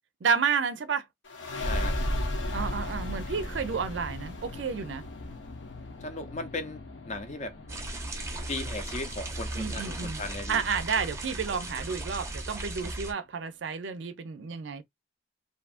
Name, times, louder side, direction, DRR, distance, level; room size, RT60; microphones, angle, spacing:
voice 1, 0.2-1.1 2.5-5.0 9.5-10.2 10.5-14.8, right 6 dB, 70° right, 0.5 m, -31 dB
sound 1, 1.2-12.5, left 1 dB, 70° left, 0.8 m, -37 dB
voice 2, 1.6-2.0 6.0-7.6 8.5-10.6, left 2 dB, 40° left, 0.6 m, -37 dB
sound 2, 7.7-13.1, right 2 dB, 15° right, 0.6 m, -37 dB
2.6 x 2.4 x 2.4 m
head